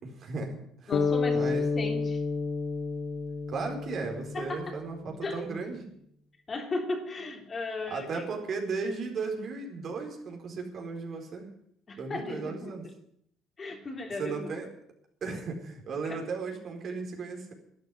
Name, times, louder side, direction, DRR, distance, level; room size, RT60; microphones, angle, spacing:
voice 1, 0.0-0.9 1.3-1.6 3.5-5.8 7.9-11.5 12.0-12.8 14.2-14.7 15.2-17.5, right 4 dB, 50° right, 2 dB, 4.4 m, -35 dB
sound 1, 0.9-5.2, left 4 dB, 60° left, 1.4 m, -30 dB
voice 2, 0.9-2.2 4.3-5.4 6.5-8.2 11.9-12.9 13.6-14.5 16.1-16.3, left 2 dB, 30° left, 3 dB, 3.1 m, -36 dB
12.0 x 9.6 x 9.7 m, 0.70 s
cardioid pair, 100°, 0 cm